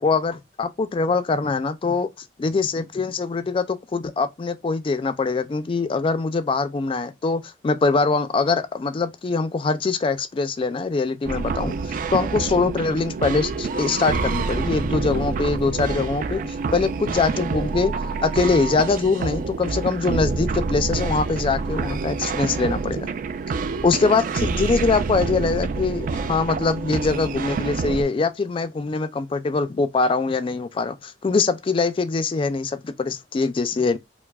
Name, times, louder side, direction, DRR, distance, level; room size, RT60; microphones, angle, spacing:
voice 1, 0.0-2.1 2.4-17.9 18.2-23.1 23.8-34.0, left 4 dB, 30° left, 0.3 m, -23 dB
sound 1, 11.2-28.0, right 4 dB, 50° right, 0.3 m, -27 dB
sound 2, 13.5-15.2 15.5-15.6 16.1-20.5 21.0-21.1 21.9-22.0 22.2-22.3, right 3 dB, 70° right, 0.9 m, -36 dB
4.5 x 2.0 x 2.3 m
head